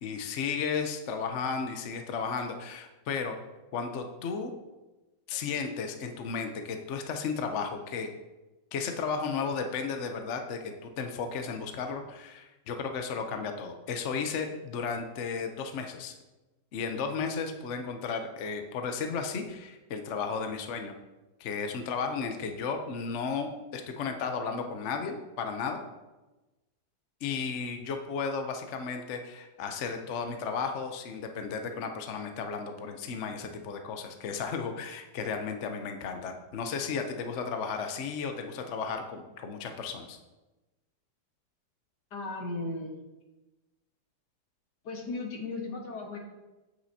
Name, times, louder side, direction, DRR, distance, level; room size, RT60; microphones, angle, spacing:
voice 1, 0.0-3.3 3.7-4.6 5.3-8.1 8.7-16.1 16.7-20.9 21.4-25.8 27.2-40.2, left 5 dB, 55° left, 5 dB, 0.9 m, -34 dB
voice 2, 42.1-43.0 44.8-46.2, left 3 dB, 75° left, 1 dB, 2.0 m, -36 dB
9.3 x 8.3 x 2.8 m, 1.1 s
omnidirectional pair, 1.8 m